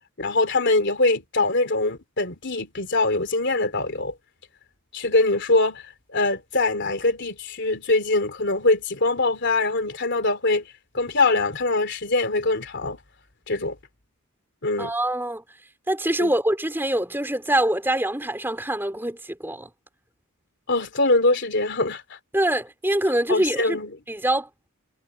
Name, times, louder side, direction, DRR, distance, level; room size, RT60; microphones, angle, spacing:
voice 1, 0.2-4.1 4.9-10.7 10.9-13.0 13.5-13.8 14.6-14.9 16.2-16.3 20.7-22.2 23.3-23.9, left 2 dB, 55° left, 3.2 m, -23 dB
voice 2, 14.8-15.4 15.9-19.7 22.3-23.8 24.1-24.5, right 1 dB, 10° right, 4.0 m, -24 dB
head